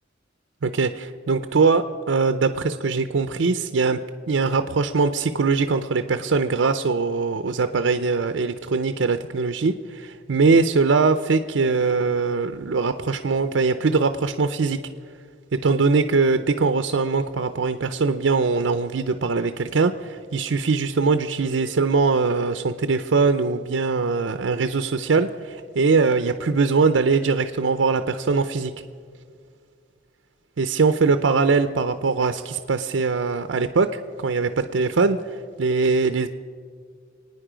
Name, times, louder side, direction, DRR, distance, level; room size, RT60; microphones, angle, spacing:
voice 1, 0.6-4.0 4.3-14.8 15.5-28.7 30.6-36.3, right 4 dB, 75° right, 9 dB, 0.5 m, -22 dB
25.5 x 9.6 x 5.0 m, 2.1 s
head